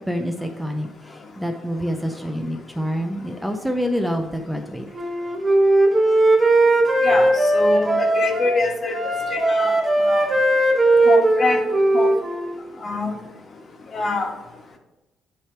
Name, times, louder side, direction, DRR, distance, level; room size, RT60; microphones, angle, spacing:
voice 1, 0.1-0.9 1.4-4.8, equal, 5° right, 4 dB, 0.6 m, -26 dB
Wind instrument woodwind instrument, 4.9-8.6 8.9-12.5, right 2 dB, 20° right, 1.3 m, -18 dB
voice 2, 7.0-9.0 9.3-9.7 10.1-10.2 11.0-11.6 11.9-12.1 12.8-13.1 13.9-14.3, left 3 dB, 45° left, 2 dB, 1.4 m, -24 dB
9.4 x 3.2 x 4.6 m, 1.0 s
cardioid pair, 90°, 0 cm